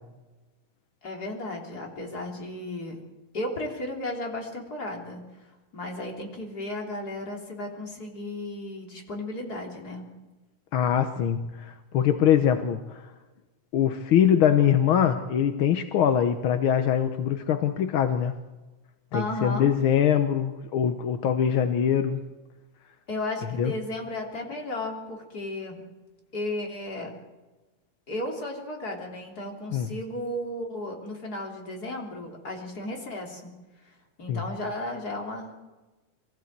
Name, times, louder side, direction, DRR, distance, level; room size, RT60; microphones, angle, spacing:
voice 1, 1.0-3.0 3.3-5.3 5.7-10.1 19.1-19.8 23.1-25.9 26.3-27.1 28.1-33.5 34.2-35.5, left 1 dB, 30° left, 1 dB, 3.7 m, -34 dB
voice 2, 10.7-13.1 13.7-18.3 19.1-22.2 23.6-23.7 29.7-29.9 34.3-34.4, left 9 dB, 65° left, 8 dB, 1.4 m, -23 dB
23.0 x 15.5 x 8.1 m, 1.2 s
omnidirectional pair, 3.3 m